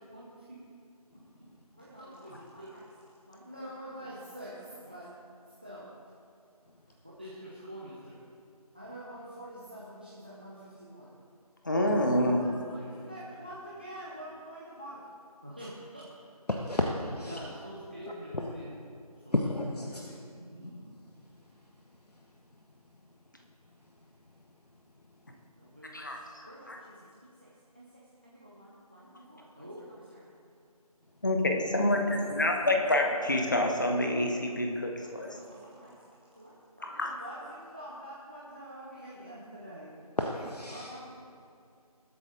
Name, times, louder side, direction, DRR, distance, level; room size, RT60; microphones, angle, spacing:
voice 1, 0.1-0.6 1.8-2.9 3.2-5.1 5.6-5.9 7.0-8.2 8.7-11.2 12.0-15.0 15.4-16.0 17.1-18.7 19.2-19.5 19.8-20.9 25.6-26.1 26.4-27.1 27.4-27.5 27.7-27.8 28.2-30.3 31.7-32.9 35.0-35.9 36.4-36.5 36.8-39.9 40.7-41.3, equal, 15° right, -6 dB, 0.7 m, -46 dB
voice 2, 11.6-12.4 25.9-26.2 26.7-26.8 31.2-35.3 36.8-37.1, left 1 dB, 30° left, 2 dB, 1.1 m, -27 dB
voice 3, 16.5-17.4 18.3-18.5 19.3-20.1 20.7-20.8 40.2-40.9, left 1 dB, 80° left, 1 dB, 1.2 m, -31 dB
20.0 x 8.3 x 3.9 m, 2.5 s
figure-of-eight pair, 165°, 20 cm